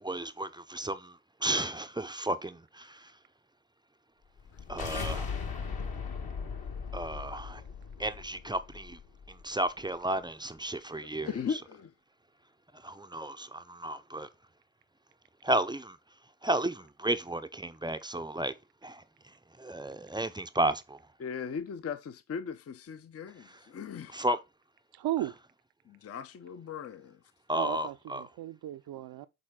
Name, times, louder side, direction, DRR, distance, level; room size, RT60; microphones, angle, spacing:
voice 1, 0.0-3.1 4.7-5.3 6.9-7.6 8.0-9.0 9.3-11.3 12.8-14.3 15.4-16.0 16.4-18.5 18.8-19.0 19.6-21.0 24.1-24.4 27.5-28.2, right 1 dB, 10° right, 0.6 m, -33 dB
sound 1, 4.4-9.5, left 5 dB, 55° left, 1.5 m, -38 dB
voice 2, 11.0-11.9 21.2-24.2 25.9-27.2, left 6 dB, 35° left, 0.6 m, -38 dB
voice 3, 24.9-25.3 27.5-29.3, right 13 dB, 55° right, 0.6 m, -35 dB
6.7 x 3.9 x 3.7 m
hypercardioid pair, 40°, 45 cm